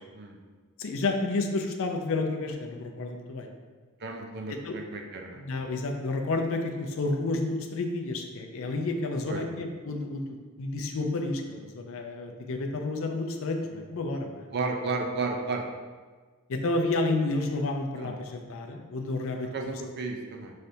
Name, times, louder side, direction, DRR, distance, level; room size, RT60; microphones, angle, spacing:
voice 1, 0.8-3.5 4.5-4.8 5.3-14.5 16.5-19.5, left 2 dB, 60° left, 3 dB, 0.5 m, -30 dB
voice 2, 4.0-5.4 9.3-9.4 14.5-15.6 17.9-18.2 19.5-20.5, right 3 dB, 50° right, 3 dB, 0.5 m, -33 dB
5.5 x 3.3 x 2.7 m, 1.5 s
head